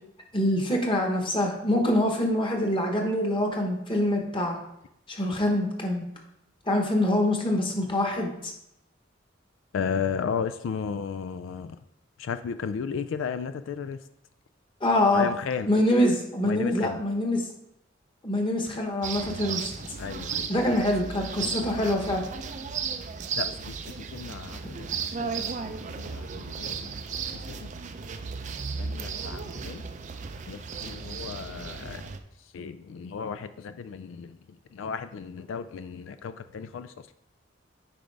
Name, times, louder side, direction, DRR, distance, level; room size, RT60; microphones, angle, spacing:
voice 1, 0.3-4.6 5.1-6.0 6.7-8.5 14.8-15.3 15.7-17.4 18.2-19.7 20.5-22.2, left 1 dB, 25° left, 2 dB, 1.2 m, -25 dB
voice 2, 9.7-11.8 12.2-14.0 15.1-15.7 16.4-17.0 20.0-20.9 21.4-21.9 23.4-26.9 27.5-27.7 28.8-29.8 30.5-32.1 32.5-34.4 34.7-36.9, left 6 dB, 75° left, 11 dB, 0.3 m, -34 dB
sound 1, 19.0-32.2, right 5 dB, 40° right, 0.4 m, -35 dB
9.0 x 5.1 x 3.4 m, 0.81 s
head